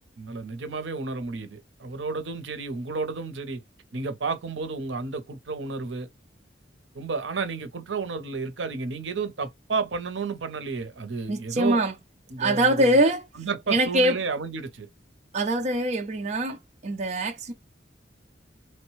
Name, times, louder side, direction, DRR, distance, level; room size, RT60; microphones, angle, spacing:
voice 1, 0.2-3.6 3.9-6.1 6.9-11.8 12.3-13.0 13.4-14.9, right 4 dB, 80° right, 0.7 m, -32 dB
voice 2, 11.3-11.9 12.4-13.3 13.7-14.2 15.3-17.5, right 1 dB, 40° right, 0.5 m, -23 dB
3.0 x 2.1 x 3.0 m
head